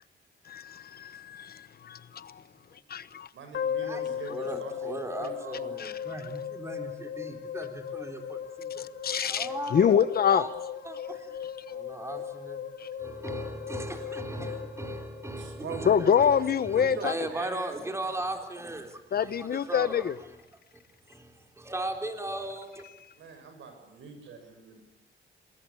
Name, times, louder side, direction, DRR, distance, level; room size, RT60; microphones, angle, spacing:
voice 1, 0.5-2.4 2.9-3.3 5.8-5.9 8.8-10.4 12.8-12.9 15.8-17.1 19.1-20.2, left 8 dB, 55° left, 1.1 m, -26 dB
voice 2, 3.3-5.7 9.7-9.9 15.4-15.8 16.7-18.2 23.1-24.8, right 5 dB, 85° right, 6.7 m, -43 dB
sound 1, 3.5-15.8, left 8 dB, 70° left, 3.3 m, -37 dB
voice 3, 4.3-8.9 9.3-10.5 10.8-11.3 11.7-12.7 13.0-20.1 21.1-22.8, right 1 dB, 15° right, 3.7 m, -37 dB
27.5 x 20.5 x 8.6 m
cardioid pair, 120°, 19 cm